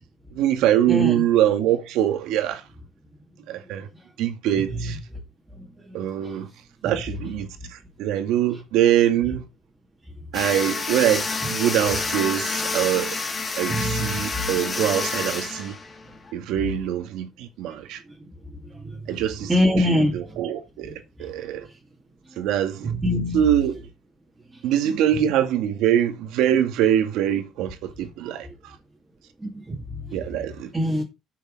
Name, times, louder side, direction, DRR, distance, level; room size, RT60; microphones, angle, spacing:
voice 1, 0.3-2.6 3.5-3.9 4.2-5.0 5.9-6.5 6.8-9.4 10.3-13.2 13.6-15.8 16.3-18.0 19.1-21.7 22.4-22.9 23.3-23.8 24.6-28.5 30.1-30.7, right 11 dB, 90° right, 2.1 m, -23 dB
sound 1, 10.3-16.3, left 3 dB, 20° left, 2.1 m, -28 dB
voice 2, 13.7-14.4 18.7-19.0 19.5-20.2 22.8-23.4 29.4-29.8 30.0-30.1 30.7-31.0, left 1 dB, 10° right, 2.4 m, -23 dB
8.5 x 6.7 x 6.5 m
cardioid pair, 150°, 0 cm